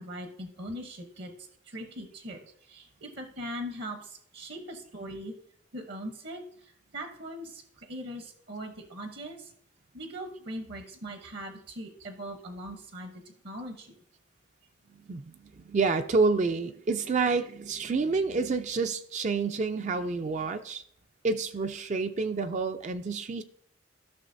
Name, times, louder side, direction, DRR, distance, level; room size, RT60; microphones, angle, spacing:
voice 1, 0.0-1.3 1.6-5.3 5.7-9.5 9.9-13.1 13.4-14.0, equal, 55° right, 5 dB, 0.8 m, -40 dB
voice 2, 15.1-20.8 21.2-23.4, right 4 dB, 35° right, 9 dB, 0.3 m, -28 dB
13.0 x 6.2 x 2.6 m, 0.65 s
head